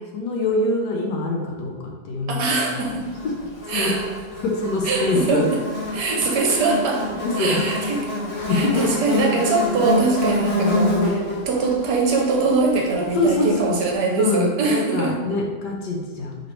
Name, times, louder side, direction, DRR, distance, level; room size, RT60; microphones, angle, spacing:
voice 1, 0.1-2.6 3.7-3.9 4.4-5.5 7.1-7.6 8.4-8.9 13.2-13.8 14.2-16.4, left 2 dB, 70° left, 0 dB, 1.3 m, -24 dB
voice 2, 2.3-3.1 3.7-4.0 4.8-5.6 5.9-7.1 7.4-8.0 8.5-15.2, right 3 dB, 70° right, 0 dB, 1.2 m, -22 dB
Buzz, 3.1-13.5, left 2 dB, 50° left, 1.1 m, -27 dB
5.1 x 3.2 x 3.0 m, 1.3 s
omnidirectional pair, 2.0 m